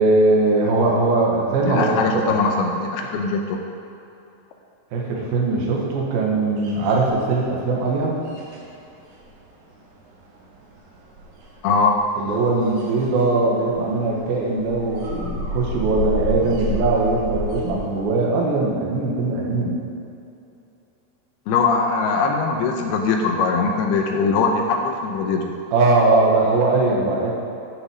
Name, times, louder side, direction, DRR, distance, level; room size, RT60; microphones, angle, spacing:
voice 1, 0.0-2.3 4.9-8.2 12.2-19.8 25.7-27.3, right 3 dB, 65° right, -2 dB, 2.9 m, -20 dB
voice 2, 1.6-3.6 11.6-12.0 21.5-25.5, left 4 dB, 80° left, 2 dB, 2.4 m, -21 dB
sound 1, 6.6-7.7 8.0-18.0, left 2 dB, 85° right, 4.0 m, -32 dB
10.0 x 6.6 x 6.2 m, 2.7 s
omnidirectional pair, 5.0 m